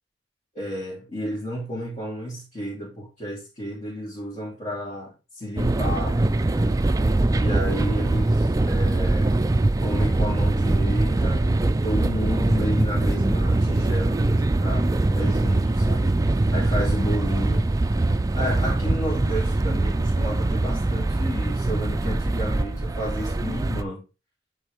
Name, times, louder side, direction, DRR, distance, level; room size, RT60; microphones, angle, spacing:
voice 1, 0.5-6.2 6.5-6.8 7.3-9.4 9.8-16.2 16.5-17.7 18.3-24.0, equal, 40° left, 2.8 m, -32 dB
sound 1, 5.6-23.8, right 2 dB, 20° right, 0.4 m, -22 dB
9.5 x 4.6 x 3.4 m
head